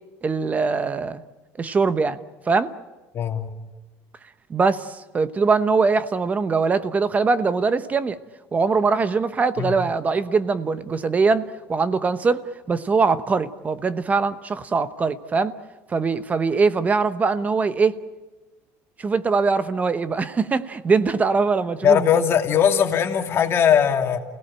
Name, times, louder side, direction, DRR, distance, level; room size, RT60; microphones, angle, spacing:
voice 1, 0.2-1.2 1.6-2.2 2.5-2.7 4.5-8.2 8.5-15.5 15.9-18.0 19.0-22.2, right 4 dB, 20° right, 13 dB, 0.9 m, -22 dB
voice 2, 3.1-3.5 9.6-9.7 21.8-24.2, left 8 dB, 35° left, 3 dB, 2.6 m, -19 dB
29.0 x 17.5 x 8.9 m, 1.2 s
cardioid pair, 130°, 7 cm